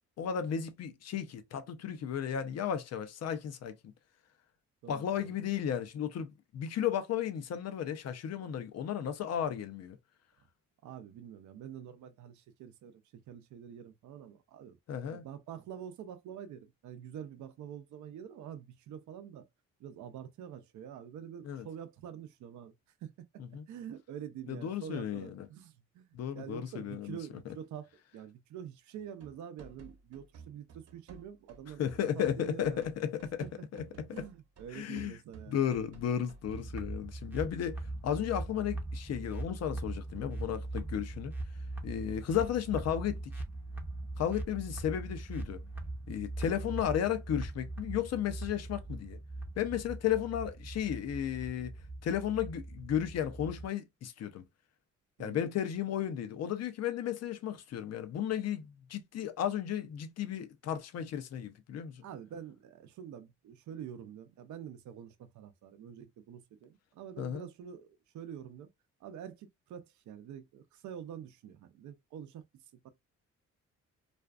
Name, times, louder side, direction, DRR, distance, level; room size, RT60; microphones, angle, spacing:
voice 1, 0.2-3.9 4.9-10.0 14.9-15.3 21.4-21.6 23.4-23.7 24.5-25.5 26.1-27.2 31.8-33.5 33.7-34.3 34.7-35.2 35.5-41.3 41.8-43.3 44.2-45.6 46.1-49.2 49.6-51.7 52.0-54.4 55.2-62.0 67.2-67.5, left 9 dB, 55° left, 0.6 m, -34 dB
voice 2, 4.8-5.3 10.8-14.8 15.1-19.5 19.8-22.7 23.0-23.1 23.7-31.8 32.1-32.9 33.4-33.7 34.1-35.7 55.2-55.4 62.0-68.7 69.0-72.4 72.8-72.9, right 9 dB, 75° right, 0.6 m, -46 dB
sound 1, 29.0-36.8, right 5 dB, 55° right, 0.9 m, -53 dB
sound 2, 36.4-53.7, right 2 dB, 5° right, 0.6 m, -41 dB
2.5 x 2.4 x 2.3 m
cardioid pair, 90°, 30 cm